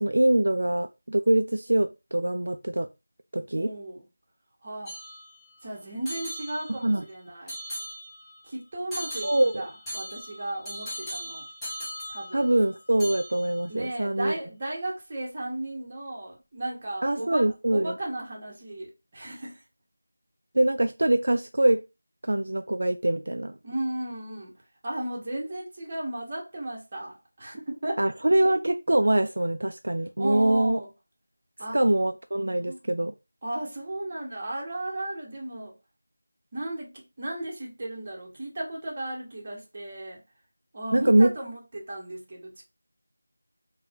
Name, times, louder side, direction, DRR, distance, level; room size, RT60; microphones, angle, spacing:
voice 1, 0.0-2.9 3.3-3.7 6.7-7.0 9.2-9.6 12.3-14.3 17.0-17.9 20.5-21.8 22.2-23.5 28.0-30.8 31.7-33.1 40.9-41.3, right 1 dB, 70° right, 0.3 m, -23 dB
voice 2, 3.5-4.1 4.6-5.0 5.6-7.6 8.4-11.5 12.1-12.5 13.7-19.6 23.6-24.5 24.8-28.0 30.2-30.9 31.6-31.8 32.6-32.8 33.4-35.7 36.5-40.2 40.7-42.6, right 1 dB, 30° right, 1.0 m, -35 dB
sound 1, 4.9-5.6 6.1-7.1 7.5-8.4 8.9-12.7 13.0-13.6, equal, 5° left, 0.6 m, -39 dB
2.6 x 2.2 x 3.3 m
figure-of-eight pair, 175°, 0 cm